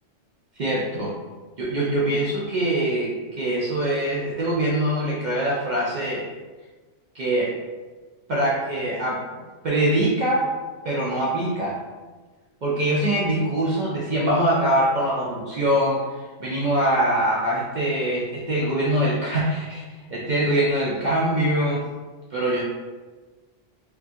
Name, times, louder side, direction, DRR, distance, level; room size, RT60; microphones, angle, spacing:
voice 1, 0.6-1.1 1.6-6.3 7.1-7.5 8.3-9.3 9.6-10.5 10.8-11.8 12.6-21.8 22.3-22.6, right 1 dB, 65° right, -6 dB, 0.4 m, -23 dB
2.8 x 2.3 x 2.6 m, 1.3 s
omnidirectional pair, 1.3 m